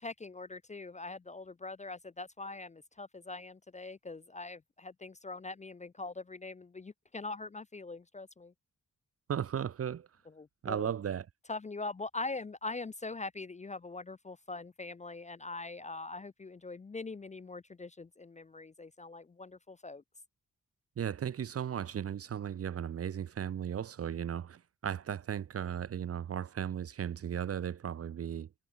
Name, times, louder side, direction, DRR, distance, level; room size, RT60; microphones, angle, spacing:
voice 1, 0.0-8.5 10.3-10.9 11.5-20.0, left 3 dB, 20° left, 0.4 m, -42 dB
voice 2, 9.3-10.1 10.6-11.3 21.0-28.5, right 8 dB, 45° right, 0.5 m, -36 dB
wide cardioid pair, 115°, 33 cm